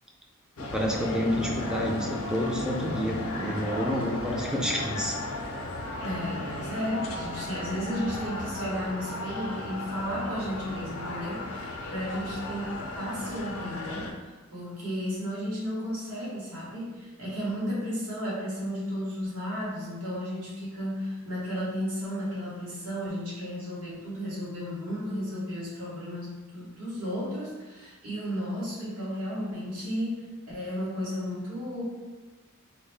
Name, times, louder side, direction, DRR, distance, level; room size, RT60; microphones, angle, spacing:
sound 1, 0.6-14.1, left 2 dB, 75° left, 0.5 m, -35 dB
voice 1, 0.7-5.1, equal, 5° right, -1 dB, 0.3 m, -29 dB
voice 2, 6.0-14.1 14.5-30.2 30.5-31.8, equal, 80° right, -7 dB, 1.4 m, -33 dB
3.7 x 2.1 x 3.2 m, 1.3 s
head